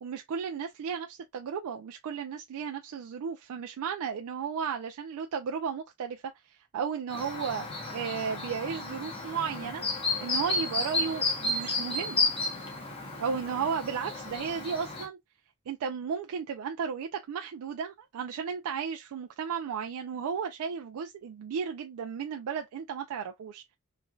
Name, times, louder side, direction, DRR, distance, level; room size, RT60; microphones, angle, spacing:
voice 1, 0.0-9.8 10.2-12.2 13.2-15.2 15.7-23.6, right 6 dB, 85° right, 0.3 m, -34 dB
Chirp tweet, 7.1-15.1, left 3 dB, 25° left, 0.9 m, -32 dB
3.1 x 2.5 x 2.2 m
head